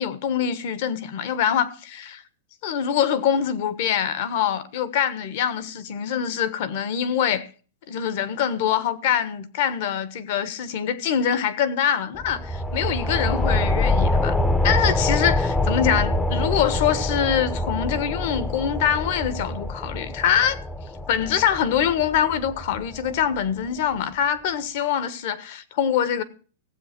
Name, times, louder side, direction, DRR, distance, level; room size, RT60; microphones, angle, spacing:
voice 1, 0.0-2.2 2.6-7.5 7.9-14.3 14.6-20.6 21.1-26.2, left 8 dB, 50° left, 1.3 m, -24 dB
sound 1, 12.1-23.4, left 1 dB, 5° left, 0.6 m, -25 dB
16.0 x 7.9 x 6.0 m
supercardioid pair, 160°, 0 cm